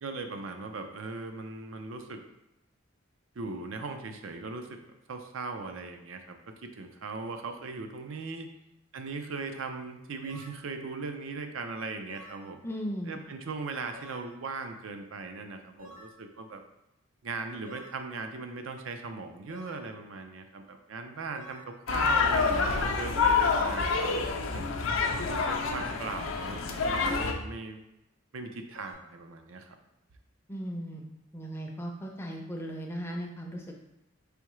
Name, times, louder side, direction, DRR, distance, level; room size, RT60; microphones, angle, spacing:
voice 1, 0.0-2.2 3.4-4.8 5.1-8.5 8.9-12.6 13.1-16.6 17.2-24.6 25.3-27.8 28.3-29.8, right 4 dB, 70° right, 6 dB, 0.5 m, -39 dB
sound 1, 10.2-10.6 12.1-12.5 13.9-14.3 15.8-16.2 17.6-18.0 19.5-19.9 21.3-21.7 23.2-23.6 25.0-25.4 26.9-27.3 28.8-28.9, left 1 dB, 85° right, 1.6 m, -49 dB
voice 2, 12.6-13.2 30.5-31.1 31.3-33.8, equal, 10° left, 1 dB, 0.5 m, -37 dB
sound 2, 21.9-27.3, left 4 dB, 75° left, 0.5 m, -27 dB
4.5 x 3.4 x 3.1 m, 0.91 s
head